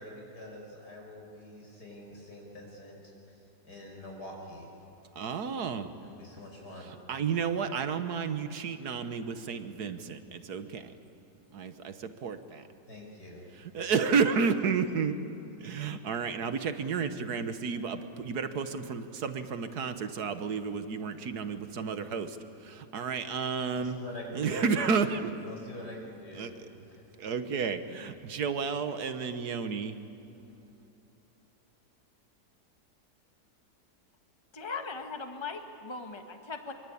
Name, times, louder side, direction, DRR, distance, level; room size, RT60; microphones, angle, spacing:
voice 1, 0.0-4.7 6.0-6.9 12.9-13.5 22.2-22.3 23.7-25.0 25.4-27.0, left 1 dB, 70° left, 0 dB, 6.2 m, -45 dB
voice 2, 5.2-5.9 7.1-10.9 11.5-12.6 13.7-15.2 15.6-22.4 22.6-24.0 24.3-25.3 26.4-26.5 27.2-30.0, right 5 dB, 70° right, 10 dB, 1.7 m, -31 dB
voice 3, 34.5-36.7, left 4 dB, 15° left, 5 dB, 1.5 m, -39 dB
24.5 x 24.5 x 8.6 m, 2.9 s
omnidirectional pair, 1.8 m